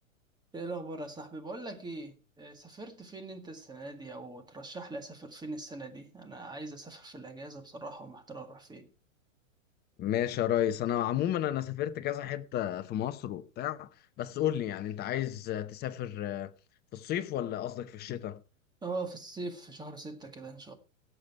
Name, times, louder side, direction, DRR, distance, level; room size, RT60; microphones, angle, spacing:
voice 1, 0.5-8.9 18.8-20.7, right 3 dB, 10° right, 1.8 m, -41 dB
voice 2, 10.0-13.9 14.2-16.5 16.9-18.4, left 11 dB, 25° left, 0.8 m, -32 dB
17.0 x 7.0 x 4.5 m
hypercardioid pair, 125°, 41 cm